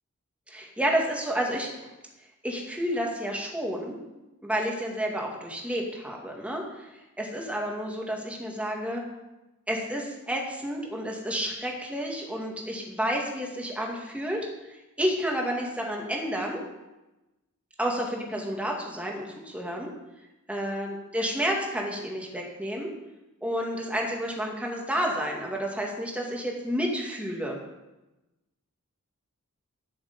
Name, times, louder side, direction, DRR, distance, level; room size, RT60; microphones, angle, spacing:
voice 1, 0.5-1.7 2.4-4.0 4.4-6.9 7.2-9.0 9.7-16.6 17.8-19.9 20.5-22.9 23.4-27.6, equal, 5° right, -1 dB, 2.2 m, -30 dB
13.0 x 7.1 x 7.1 m, 1.0 s
head